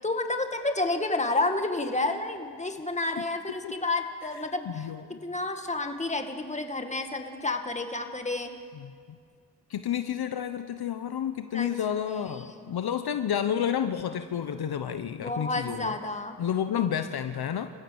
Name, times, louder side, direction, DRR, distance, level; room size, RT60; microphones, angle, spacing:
voice 1, 0.0-4.8 5.2-8.5 11.5-11.7 12.1-12.7 15.2-16.4, left 2 dB, 15° left, 5 dB, 2.0 m, -30 dB
voice 2, 4.7-5.2 8.7-9.2 9.7-15.9 16.4-17.7, left 9 dB, 60° left, 9 dB, 1.0 m, -30 dB
27.5 x 15.0 x 7.2 m, 2.2 s
cardioid pair, 85°, 43 cm